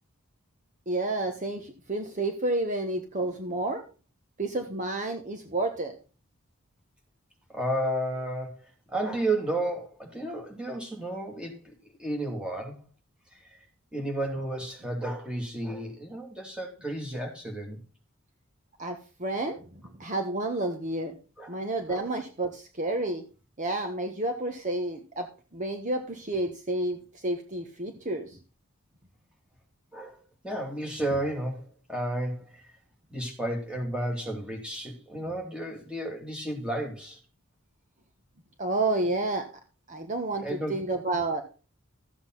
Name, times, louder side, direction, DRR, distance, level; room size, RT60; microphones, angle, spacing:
voice 1, 0.9-3.8 4.4-5.9 18.8-19.6 20.0-21.1 21.5-23.2 23.6-28.4 38.6-39.5 39.9-41.4, right 2 dB, 35° right, 1.3 m, -30 dB
voice 2, 7.5-8.6 8.9-11.5 12.0-12.8 13.9-17.8 21.4-21.6 21.9-22.1 29.9-32.6 33.1-37.2 40.4-40.8, right 1 dB, 5° right, 2.7 m, -32 dB
13.5 x 8.0 x 3.9 m
head